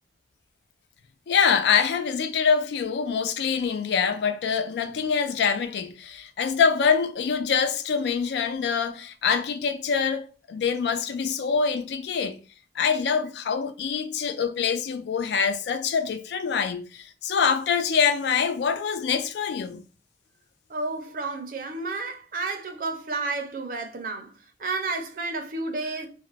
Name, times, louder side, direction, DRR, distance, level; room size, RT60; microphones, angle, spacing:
voice 1, 1.3-12.4 12.8-19.8, left 6 dB, 70° left, 0.3 m, -25 dB
voice 2, 20.7-24.3 24.6-26.1, right 3 dB, 50° right, 0.4 m, -31 dB
2.4 x 2.0 x 3.1 m
head